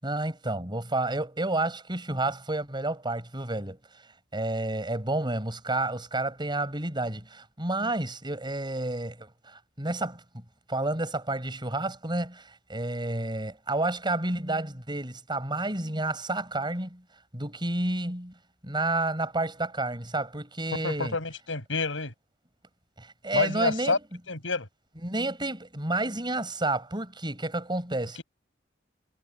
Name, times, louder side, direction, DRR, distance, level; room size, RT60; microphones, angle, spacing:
voice 1, 0.0-3.8 4.3-10.4 10.7-17.0 17.3-18.3 18.6-21.2 23.0-24.0 25.0-28.2, right 2 dB, 25° right, 6.8 m, -30 dB
voice 2, 20.8-22.1 23.3-24.0 24.3-24.7, left 3 dB, 80° left, 6.4 m, -28 dB
head